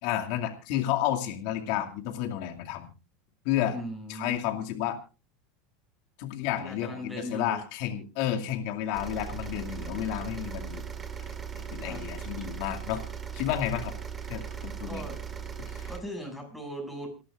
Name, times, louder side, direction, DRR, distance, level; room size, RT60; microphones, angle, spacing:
voice 1, 0.0-2.9 3.4-3.8 4.1-5.0 6.2-10.8 11.5-13.0 13.3-14.0 14.3-15.0 15.7-15.9, left 11 dB, 65° left, 4 dB, 2.4 m, -31 dB
voice 2, 3.7-4.4 6.5-7.6 11.8-12.0 14.9-15.2 15.9-17.1, equal, ahead, 1 dB, 7.0 m, -39 dB
sound 1, 8.9-16.0, right 7 dB, 20° right, 2.0 m, -38 dB
27.5 x 11.5 x 2.5 m, 0.30 s
supercardioid pair, 130°, 0 cm